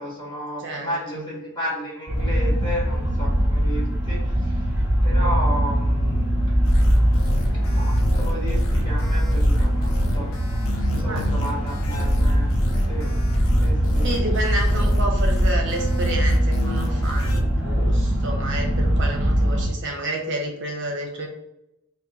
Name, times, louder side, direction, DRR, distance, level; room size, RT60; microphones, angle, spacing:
voice 1, 0.0-4.3 5.0-6.4 7.6-10.3 10.9-12.5 12.9-13.1 13.6-14.1, equal, 20° left, -6 dB, 1.2 m, -32 dB
voice 2, 0.6-1.3 11.1-11.3 14.0-21.3, right 1 dB, 55° right, 1 dB, 0.6 m, -30 dB
sound 1, 2.1-19.7, equal, 5° right, 0.6 m, -22 dB
sound 2, 6.6-17.4, left 1 dB, 65° left, 0.5 m, -27 dB
2.9 x 2.1 x 3.9 m, 0.86 s
head